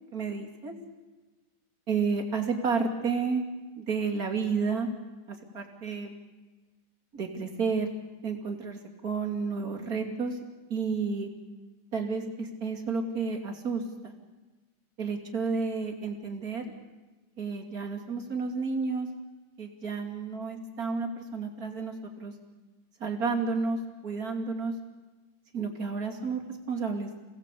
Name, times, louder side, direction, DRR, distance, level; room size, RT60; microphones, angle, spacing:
voice 1, 0.1-0.7 1.9-3.4 3.8-4.9 5.3-6.2 7.1-7.9 8.2-10.4 10.7-11.3 11.9-14.1 15.0-16.6 17.4-19.1 19.6-22.3 23.0-24.7 25.5-26.4 26.7-27.1, right 4 dB, 30° right, 2 dB, 2.7 m, -31 dB
28.5 x 18.0 x 8.4 m, 1.2 s
omnidirectional pair, 3.8 m